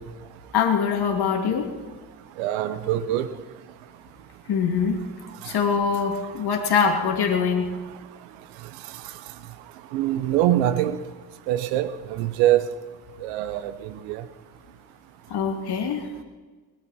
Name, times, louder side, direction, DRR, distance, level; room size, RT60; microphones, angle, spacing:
voice 1, 0.5-1.7 4.5-5.0 5.4-7.7 15.3-16.1, left 6 dB, 60° left, 3 dB, 2.7 m, -23 dB
voice 2, 2.4-3.3 9.9-11.0 11.5-12.6 13.2-13.7 14.1-14.2, right 13 dB, 80° right, 13 dB, 1.0 m, -23 dB
21.5 x 12.5 x 4.3 m, 1.4 s
hypercardioid pair, 55°, 44 cm